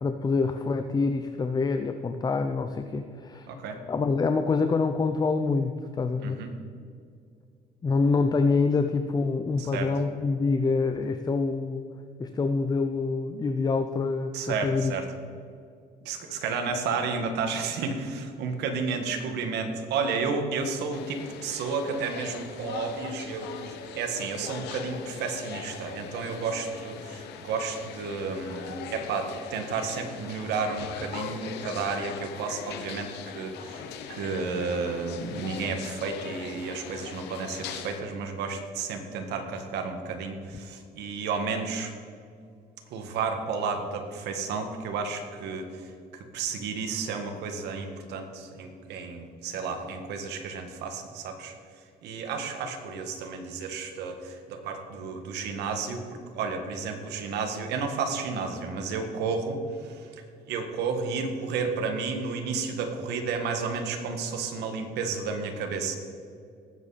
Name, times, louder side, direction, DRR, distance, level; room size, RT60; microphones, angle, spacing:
voice 1, 0.0-3.5 3.9-6.4 7.8-11.8 12.2-14.9, left 4 dB, 25° left, 8 dB, 0.6 m, -26 dB
voice 2, 3.5-3.8 6.2-6.5 9.6-9.9 14.3-15.1 16.0-33.8 34.1-41.9 42.9-45.9 46.3-51.6 52.0-60.1 60.5-66.0, right 4 dB, 80° right, 5 dB, 1.8 m, -32 dB
sound 1, 20.9-38.0, left 7 dB, 85° left, 1.2 m, -40 dB
19.0 x 8.3 x 4.2 m, 2.3 s
cardioid pair, 110°, 17 cm